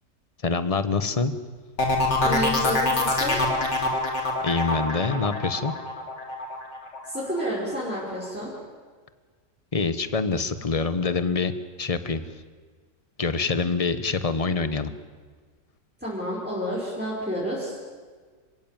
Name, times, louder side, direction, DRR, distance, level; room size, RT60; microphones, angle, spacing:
voice 1, 0.4-1.3 4.4-5.7 9.7-11.5 11.8-12.3 13.2-14.9, left 4 dB, 25° left, 12 dB, 1.1 m, -25 dB
sound 1, 1.8-7.4 7.8-8.3, left 2 dB, 75° left, 3.7 m, -25 dB
voice 2, 2.2-3.4 7.0-8.5 16.0-17.8, equal, 5° right, -7 dB, 5.5 m, -30 dB
27.0 x 16.5 x 9.3 m, 1.5 s
omnidirectional pair, 1.9 m